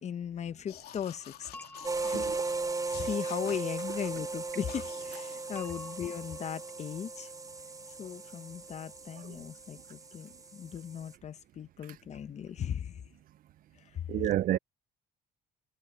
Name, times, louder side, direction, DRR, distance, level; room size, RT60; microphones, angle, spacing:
voice 1, 0.0-1.5 2.0-2.3 2.9-7.3 8.0-13.0 13.9-14.0, left 8 dB, 40° left, 0.9 m, -38 dB
sound 1, 0.7-2.6 2.9-4.1 4.7-5.5, left 12 dB, 65° left, 3.0 m, -50 dB
sound 2, 1.5-2.8 5.6-6.8, left 2 dB, 10° left, 7.2 m, -50 dB
sound 3, 1.8-11.1, right 3 dB, 20° right, 3.7 m, -37 dB
voice 2, 14.1-14.6, right 13 dB, 55° right, 0.5 m, -30 dB
cardioid pair, 110°, 17 cm